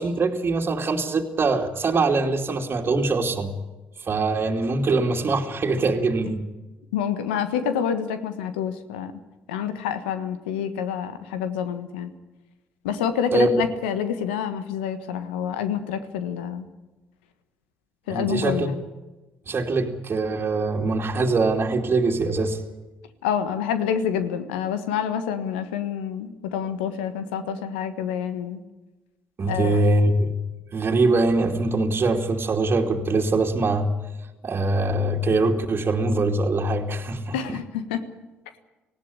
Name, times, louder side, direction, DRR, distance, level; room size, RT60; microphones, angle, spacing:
voice 1, 0.0-3.5 4.1-6.4 13.3-13.6 18.1-18.7 19.5-22.6 29.4-30.3 30.7-33.9 34.4-37.3, right 3 dB, 40° right, 0 dB, 2.6 m, -23 dB
voice 2, 6.9-9.1 9.5-12.1 12.8-16.7 18.1-18.8 23.2-28.6 29.5-29.8 37.3-38.0, left 8 dB, 85° left, 10 dB, 1.5 m, -27 dB
19.0 x 15.5 x 10.0 m, 1.1 s
hypercardioid pair, 50°, 5 cm